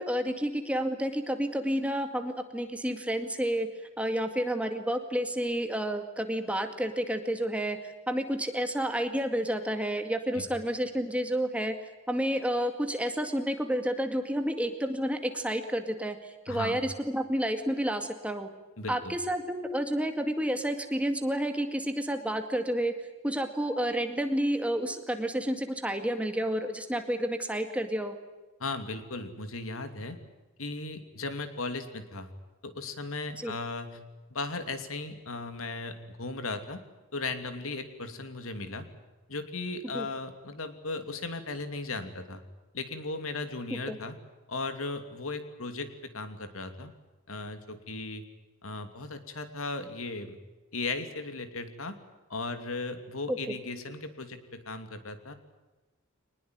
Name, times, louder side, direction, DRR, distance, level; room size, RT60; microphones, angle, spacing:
voice 1, 0.0-3.7 4.0-11.7 12.1-18.5 18.9-28.2 33.4-33.5 39.9-40.1 43.9-44.0 53.3-53.4, right 1 dB, 5° right, 6 dB, 2.1 m, -30 dB
voice 2, 16.5-16.8 18.8-19.1 28.6-30.2 30.6-32.3 32.6-34.0 34.3-36.8 37.1-38.9 39.3-42.4 42.7-44.2 44.5-46.9 47.3-48.2 48.6-50.4 50.7-52.0 52.3-55.3, left 3 dB, 85° left, 9 dB, 2.8 m, -36 dB
24.5 x 20.0 x 9.3 m, 1.2 s
head